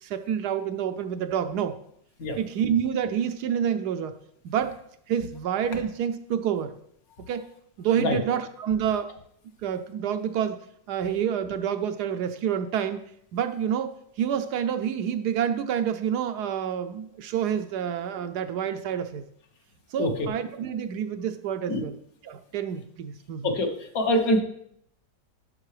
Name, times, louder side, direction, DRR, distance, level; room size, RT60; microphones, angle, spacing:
voice 1, 0.0-1.8 2.4-4.1 4.4-4.8 5.1-6.7 7.2-7.5 7.8-9.1 9.6-10.6 10.9-13.0 13.3-19.3 19.9-21.9 22.2-23.5, right 8 dB, 75° right, 9 dB, 1.1 m, -28 dB
voice 2, 23.9-24.4, left 1 dB, 60° left, 4 dB, 1.4 m, -24 dB
11.0 x 6.3 x 3.2 m, 0.70 s
omnidirectional pair, 1.9 m